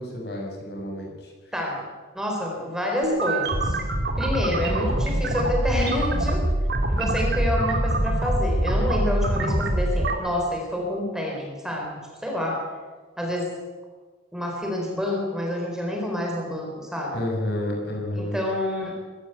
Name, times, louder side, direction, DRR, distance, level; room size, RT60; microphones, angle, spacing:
voice 1, 0.0-1.5 17.1-18.4, left 1 dB, 60° left, 0 dB, 6.2 m, -30 dB
voice 2, 2.1-3.8 4.2-6.4 6.9-12.6 13.2-13.5 14.3-17.1 18.2-19.0, left 1 dB, 5° right, -1 dB, 4.4 m, -28 dB
sound 1, 3.0-10.1, right 1 dB, 55° right, 2.8 m, -24 dB
23.0 x 14.5 x 8.2 m, 1.4 s
head